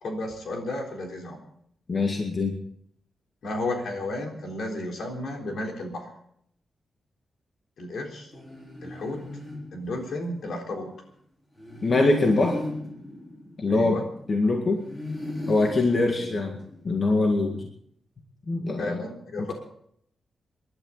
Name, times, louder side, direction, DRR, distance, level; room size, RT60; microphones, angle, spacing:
voice 1, 0.0-1.4 3.4-6.1 7.8-8.3 8.8-9.2 9.7-10.9 13.7-14.0 16.2-16.4 18.8-19.5, left 2 dB, 70° left, 1 dB, 3.9 m, -33 dB
voice 2, 1.9-2.6 11.8-12.6 13.6-14.0 14.3-14.8 15.5-16.6 16.8-17.6 18.5-19.0 19.4-19.5, left 2 dB, 35° left, 1 dB, 2.0 m, -23 dB
sound 1, 8.3-10.4 11.6-14.3 14.8-17.0, left 2 dB, 20° left, 4.1 m, -37 dB
27.5 x 12.0 x 4.1 m, 0.68 s
wide cardioid pair, 155°, 0 cm